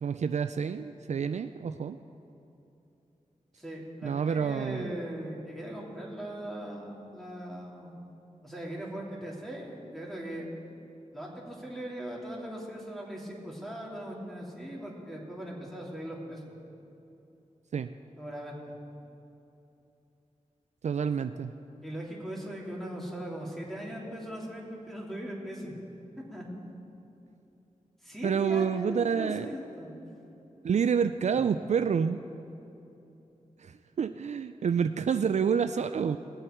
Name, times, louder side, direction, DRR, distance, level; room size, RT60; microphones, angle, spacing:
voice 1, 0.0-2.0 4.0-5.0 17.7-17.9 20.8-21.5 28.2-29.5 30.6-32.2 33.6-36.2, right 7 dB, 60° right, 10 dB, 0.4 m, -28 dB
voice 2, 3.6-7.9 8.4-10.4 11.1-16.4 18.2-18.7 21.8-25.8 26.3-26.4 28.0-29.9 31.3-31.4, equal, ahead, -3 dB, 3.1 m, -39 dB
20.0 x 7.8 x 4.5 m, 2.9 s
cardioid pair, 60°, 13 cm